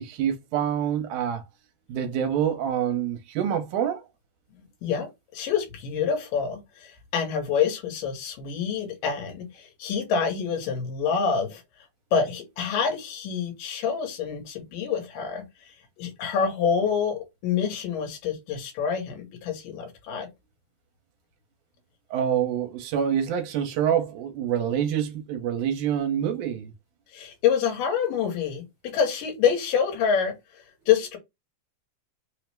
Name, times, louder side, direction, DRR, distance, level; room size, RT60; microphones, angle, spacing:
voice 1, 0.0-1.4 1.9-4.0 22.1-26.7, right 9 dB, 75° right, 2.2 m, -26 dB
voice 2, 4.8-11.6 12.1-20.3 27.1-30.3 30.9-31.2, left 7 dB, 85° left, 2.7 m, -27 dB
5.5 x 2.1 x 3.3 m
omnidirectional pair, 3.8 m